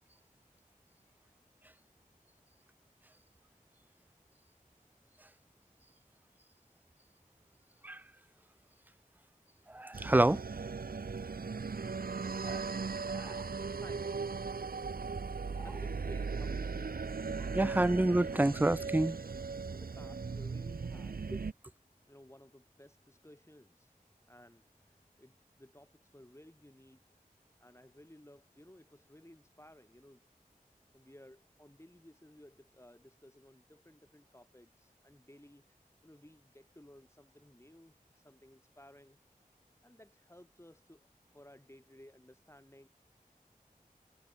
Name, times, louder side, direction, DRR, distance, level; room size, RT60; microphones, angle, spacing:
voice 1, 9.7-10.4 12.4-12.6 13.1-13.3 17.5-19.2, right 1 dB, 10° right, 0.3 m, -28 dB
sound 1, 9.9-21.5, right 4 dB, 75° right, 0.6 m, -38 dB
voice 2, 13.2-14.5 14.8-17.4 19.7-21.2 22.1-23.9 24.3-27.2 27.6-30.2 30.7-39.2 39.8-41.1 41.3-42.9, left 1 dB, 20° left, 2.8 m, -58 dB
wide cardioid pair, 50°, 15 cm